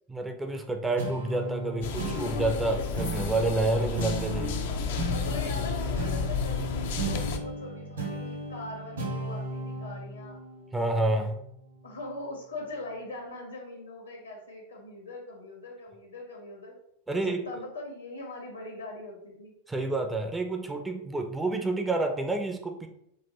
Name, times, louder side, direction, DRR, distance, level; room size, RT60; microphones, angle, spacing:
voice 1, 0.1-4.6 10.7-11.4 17.1-17.4 19.7-22.9, right 2 dB, 10° right, 5 dB, 0.4 m, -29 dB
sound 1, 1.0-11.8, right 1 dB, 70° right, 1.2 m, -36 dB
sound 2, 1.8-7.4, left 5 dB, 55° left, 0.4 m, -32 dB
voice 2, 5.1-10.4 11.8-16.8 17.1-19.5, left 2 dB, 75° left, 0 dB, 1.2 m, -41 dB
5.3 x 2.4 x 2.9 m, 0.75 s
figure-of-eight pair, 90°, 0 cm